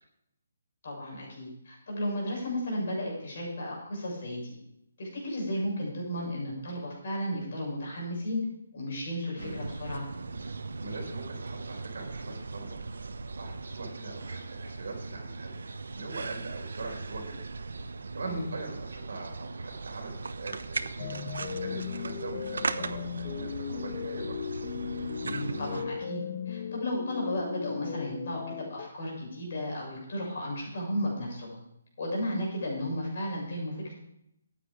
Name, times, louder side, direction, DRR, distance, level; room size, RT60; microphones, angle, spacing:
voice 1, 0.8-4.6 5.0-8.4 8.7-10.1 18.2-18.5 25.2-31.6 32.0-33.9, equal, 40° left, -1 dB, 6.9 m, -34 dB
sound 1, 9.4-25.8, right 3 dB, 75° right, 1.1 m, -38 dB
voice 2, 10.4-12.8 13.4-15.7 15.9-17.5 18.1-21.2 21.5-24.4, right 3 dB, 55° right, 1 dB, 4.6 m, -42 dB
sound 2, 21.0-28.9, left 8 dB, 25° left, 0.5 m, -37 dB
15.0 x 9.9 x 5.0 m, 0.78 s
hypercardioid pair, 180°, 0 cm